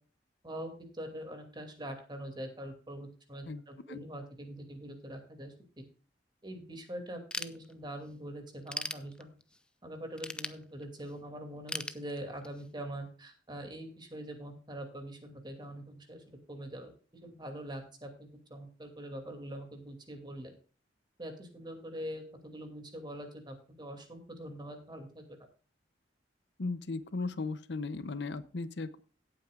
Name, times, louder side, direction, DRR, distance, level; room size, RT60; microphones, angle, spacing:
voice 1, 0.4-5.5 6.4-9.3 9.8-16.9 17.2-20.5 21.2-25.2, right 1 dB, 25° right, 5 dB, 2.6 m, -43 dB
voice 2, 3.5-4.0 26.6-29.0, left 3 dB, 65° left, 14 dB, 0.7 m, -37 dB
Ratchet pawl / Tools, 7.3-8.1 8.5-9.6 10.2-11.1 11.7-12.7, left 2 dB, 5° left, 0.5 m, -39 dB
17.0 x 8.8 x 2.4 m, 0.39 s
head